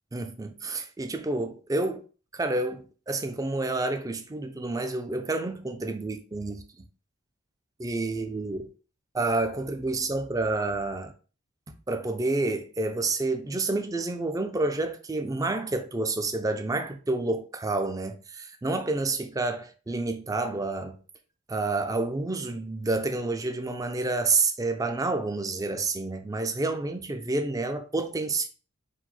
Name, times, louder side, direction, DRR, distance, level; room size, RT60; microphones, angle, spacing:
voice 1, 0.1-2.0 2.3-6.6 7.8-8.7 9.1-11.1 11.9-21.0 21.5-28.5, right 2 dB, 15° right, 0.4 m, -29 dB
4.6 x 2.1 x 4.0 m
head